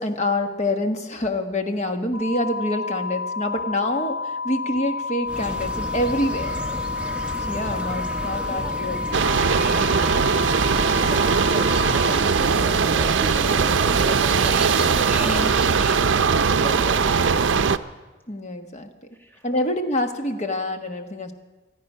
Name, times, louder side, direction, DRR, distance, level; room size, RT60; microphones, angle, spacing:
voice 1, 0.0-6.5 7.4-9.0 15.2-15.5 18.3-18.9 19.4-21.3, left 1 dB, 35° left, 5 dB, 1.3 m, -26 dB
sound 1, 2.1-12.1, left 4 dB, 85° left, 5.4 m, -30 dB
sound 2, 5.3-16.0, right 1 dB, 5° right, 1.1 m, -32 dB
sound 3, 9.1-17.8, right 5 dB, 70° right, 0.5 m, -20 dB
voice 2, 10.7-12.9 13.2-17.4 19.1-19.8, right 2 dB, 10° left, 1 dB, 2.1 m, -38 dB
26.5 x 9.6 x 5.6 m, 1.2 s
head